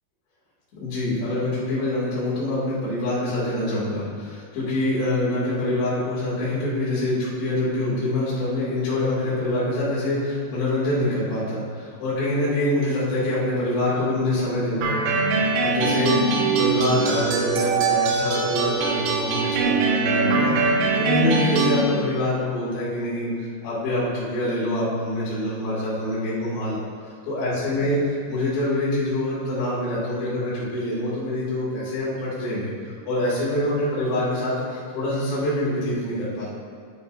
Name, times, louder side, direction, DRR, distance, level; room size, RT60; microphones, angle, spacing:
voice 1, 0.8-15.2 15.6-26.9 27.3-36.5, left 1 dB, 70° left, -9 dB, 4.7 m, -25 dB
sound 1, 14.8-21.8, right 3 dB, 85° right, 3.4 m, -22 dB
10.5 x 10.0 x 2.7 m, 2.1 s
omnidirectional pair, 5.2 m